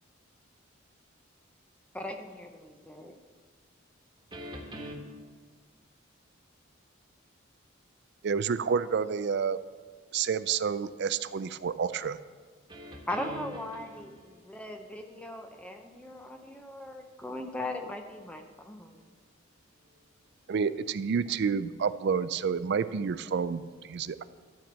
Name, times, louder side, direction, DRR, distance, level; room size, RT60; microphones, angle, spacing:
voice 1, 1.9-3.1 13.1-13.8 14.5-18.9, left 1 dB, 5° left, 0.6 m, -38 dB
voice 2, 4.1-4.9 12.7-17.6 18.2-20.6 22.6-22.7 23.9-24.2, equal, 20° right, 1.4 m, -48 dB
voice 3, 8.2-9.6 10.1-12.2 20.5-24.2, right 6 dB, 55° right, 0.4 m, -29 dB
12.5 x 4.4 x 7.4 m
head